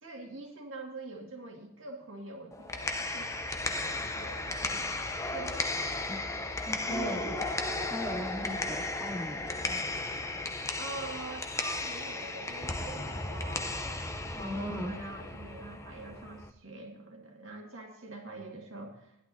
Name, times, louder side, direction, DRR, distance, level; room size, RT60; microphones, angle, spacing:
voice 1, 0.0-4.9 5.2-6.1 6.9-7.5 10.8-19.2, right 2 dB, 70° right, 1 dB, 2.1 m, -45 dB
sound 1, 2.5-16.5, left 2 dB, 15° left, 0.7 m, -35 dB
voice 2, 6.7-7.4 7.9-9.8 14.3-14.9, equal, 10° right, -4 dB, 2.7 m, -38 dB
19.0 x 11.5 x 2.8 m, 0.83 s
head